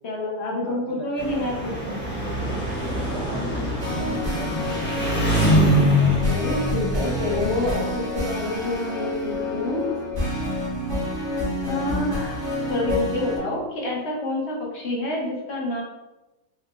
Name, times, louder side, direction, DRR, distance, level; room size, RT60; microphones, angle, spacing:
voice 1, 0.0-2.0 5.8-9.8 11.6-15.8, left 1 dB, 50° left, -3 dB, 0.9 m, -28 dB
voice 2, 0.6-1.0 3.1-5.2, right 1 dB, 65° right, -6 dB, 1.5 m, -40 dB
Engine, 1.2-7.7, equal, 10° left, 0.9 m, -24 dB
sound 1, 3.8-13.4, left 1 dB, 35° right, 1.1 m, -28 dB
4.7 x 3.4 x 2.4 m, 1.0 s
omnidirectional pair, 1.9 m